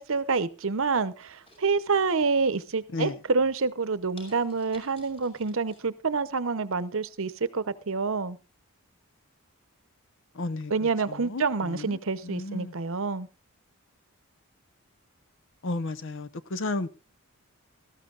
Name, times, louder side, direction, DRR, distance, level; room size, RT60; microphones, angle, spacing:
voice 1, 0.0-8.4 10.7-13.3, right 4 dB, 60° right, 0.8 m, -27 dB
sound 1, 1.2-2.2 2.7-3.1 3.5-3.6 4.2-5.8 6.2-6.3, left 1 dB, 25° left, 5.3 m, -53 dB
voice 2, 10.3-12.7 15.6-16.9, left 2 dB, 60° left, 0.8 m, -33 dB
19.0 x 13.5 x 2.5 m
head